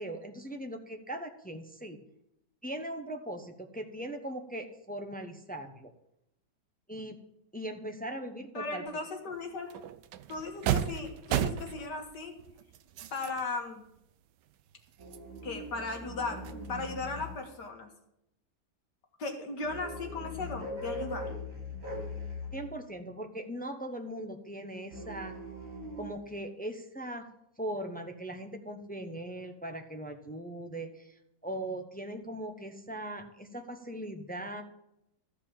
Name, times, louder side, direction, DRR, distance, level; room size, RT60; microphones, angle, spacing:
voice 1, 0.0-2.0 2.6-5.9 6.9-7.2 7.5-8.8 22.5-25.4 26.0-27.3 27.6-34.6, right 1 dB, 10° left, 5 dB, 0.5 m, -39 dB
voice 2, 8.5-9.8 10.3-12.3 13.1-13.8 15.4-16.4 16.7-17.9 19.2-21.3, left 3 dB, 70° left, 3 dB, 2.3 m, -37 dB
sound 1, 9.3-9.4 9.7-13.5 14.0-14.1 14.5-16.1 16.4-17.7, right 10 dB, 80° right, 1.3 m, -35 dB
sound 2, 15.0-17.5 19.6-22.7 24.9-26.1, left 1 dB, 55° right, 3.3 m, -41 dB
13.5 x 5.2 x 8.8 m, 0.81 s
omnidirectional pair, 1.9 m